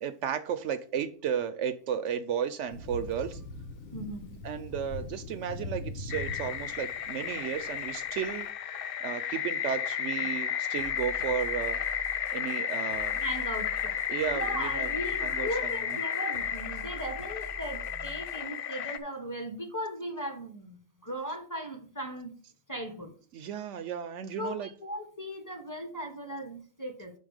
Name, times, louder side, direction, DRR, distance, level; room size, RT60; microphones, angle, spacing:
voice 1, 0.0-3.4 4.4-8.5 9.0-11.8 12.3-13.2 14.1-14.9 15.2-15.7 23.3-24.7, right 8 dB, 70° right, 12 dB, 0.8 m, -34 dB
Thunder, 2.7-8.4, left 3 dB, 85° left, 1.4 m, -41 dB
voice 2, 3.9-4.4 13.2-14.0 14.3-22.4 22.7-23.1 24.4-27.1, equal, 15° left, 3 dB, 1.0 m, -38 dB
sound 1, 6.1-19.0, left 8 dB, 60° left, 0.6 m, -33 dB
sound 2, 10.8-18.5, right 4 dB, 40° left, 1.4 m, -47 dB
5.5 x 4.6 x 6.4 m, 0.43 s
omnidirectional pair, 1.4 m